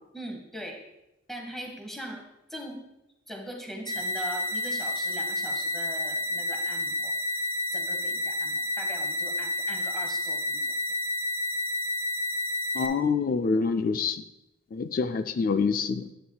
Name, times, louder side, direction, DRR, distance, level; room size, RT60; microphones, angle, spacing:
voice 1, 0.1-0.8 1.3-2.2 2.5-2.8 3.3-10.7, equal, ahead, 1 dB, 1.3 m, -41 dB
sound 1, 3.9-12.9, left 1 dB, 35° right, 0.8 m, -30 dB
voice 2, 12.8-14.2 14.7-16.1, left 5 dB, 50° left, 10 dB, 0.4 m, -26 dB
10.5 x 8.7 x 2.3 m, 0.90 s
head